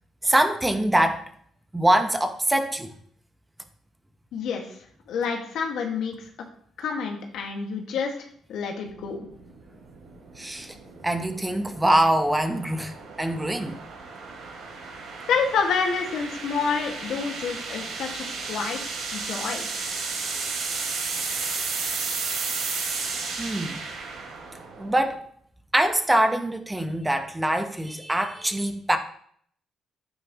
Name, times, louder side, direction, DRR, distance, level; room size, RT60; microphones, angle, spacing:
voice 1, 0.2-1.2 1.7-2.9 10.4-10.7 11.0-13.8 21.4-21.5 23.4-23.8 24.8-25.2 25.7-29.0, right 1 dB, 15° right, 1.2 m, -24 dB
voice 2, 4.3-4.7 5.1-6.2 6.8-8.1 8.5-9.2 15.3-19.7, left 5 dB, 75° left, 2.0 m, -28 dB
sound 1, 8.9-25.1, right 4 dB, 85° right, 3.7 m, -34 dB
11.0 x 9.3 x 3.1 m
cardioid pair, 75°, 0 cm